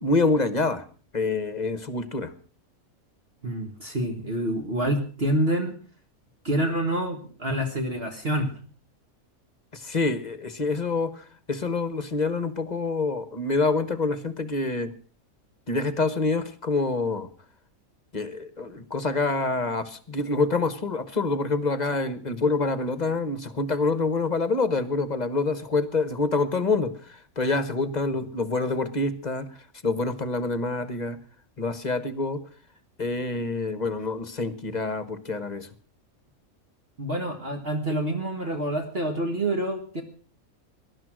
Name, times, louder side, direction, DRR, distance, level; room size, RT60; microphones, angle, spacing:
voice 1, 0.0-0.8 1.1-2.3 9.7-14.9 15.7-17.3 18.1-29.5 29.8-31.2 31.6-32.4 33.0-35.7, left 3 dB, 30° left, 14 dB, 1.2 m, -26 dB
voice 2, 3.4-5.7 6.4-8.5 37.0-40.0, right 1 dB, 40° right, 3 dB, 1.9 m, -27 dB
19.0 x 11.5 x 6.2 m, 0.41 s
omnidirectional pair, 1.5 m